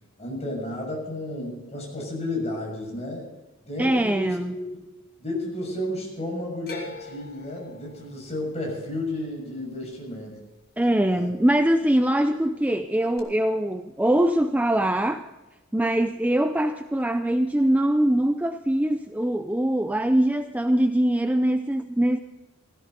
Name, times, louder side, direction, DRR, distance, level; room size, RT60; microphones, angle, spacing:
voice 1, 0.2-3.3 3.6-4.8 5.2-10.4 11.1-11.3, left 1 dB, 30° left, -1 dB, 6.5 m, -32 dB
voice 2, 3.8-4.6 10.8-15.3 15.7-22.2, right 1 dB, 5° right, 8 dB, 0.4 m, -22 dB
sound 1, 6.7-10.9 11.1-11.8 13.2-13.3, left 3 dB, 45° left, 2.6 m, -44 dB
16.5 x 16.5 x 4.0 m, 1.1 s
head